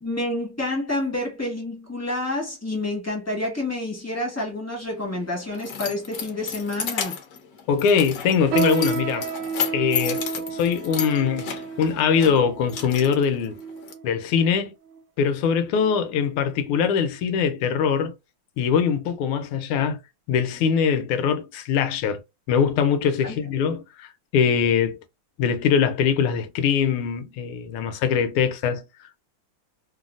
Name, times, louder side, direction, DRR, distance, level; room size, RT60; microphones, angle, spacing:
voice 1, 0.0-7.2 23.2-23.4, left 2 dB, 20° left, 0.4 m, -28 dB
Keys jangling, 4.9-13.9, left 7 dB, 70° left, 0.9 m, -33 dB
voice 2, 7.7-9.3 9.7-11.5 11.8-13.6 14.0-14.7 15.2-18.1 18.6-20.0 20.3-22.2 22.5-25.0 25.4-28.8, left 7 dB, 85° left, 1.5 m, -22 dB
sound 1, 8.5-14.2 14.9-15.0 15.7-16.0 16.4-16.6 17.3-17.4, right 5 dB, 80° right, 1.4 m, -30 dB
3.6 x 2.0 x 2.4 m
omnidirectional pair, 2.3 m